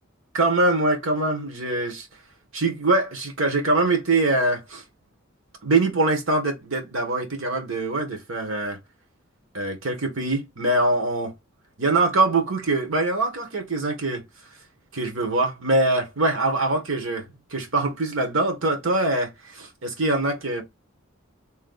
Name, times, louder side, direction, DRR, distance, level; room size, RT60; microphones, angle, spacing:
voice 1, 0.3-2.1 2.5-4.8 5.6-8.8 9.5-11.3 11.8-14.2 14.9-17.2 17.5-20.6, right 2 dB, 70° right, 1.4 m, -23 dB
3.2 x 2.9 x 3.9 m
head